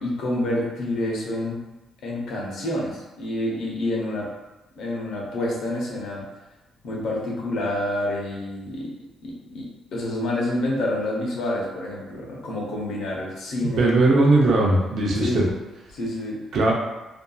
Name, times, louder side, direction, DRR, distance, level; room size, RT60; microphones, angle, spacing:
voice 1, 0.0-1.6 2.0-4.3 4.8-6.2 6.8-9.0 9.2-13.9 15.2-15.5 15.9-16.4, left 1 dB, 75° left, -3 dB, 0.8 m, -28 dB
voice 2, 13.6-15.4 16.5-16.7, right 2 dB, 70° right, -2 dB, 0.6 m, -19 dB
2.7 x 2.5 x 2.3 m, 1.0 s
cardioid pair, 90°, 0 cm